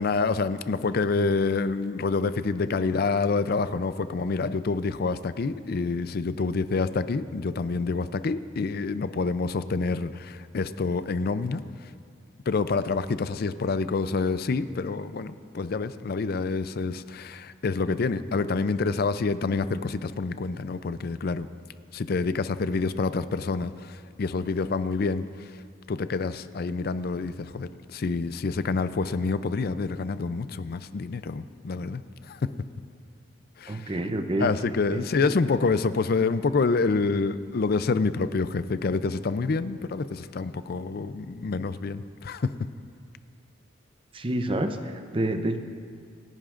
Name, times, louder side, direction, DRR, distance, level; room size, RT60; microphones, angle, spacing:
voice 1, 0.0-11.9 12.5-21.5 21.9-25.6 25.9-32.5 33.6-33.9 34.4-42.5, left 4 dB, 50° left, 13 dB, 0.4 m, -27 dB
voice 2, 33.7-34.5 34.9-35.0 35.3-35.4 44.1-45.6, right 1 dB, 25° right, 7 dB, 0.6 m, -28 dB
27.5 x 10.5 x 2.5 m, 2.2 s
head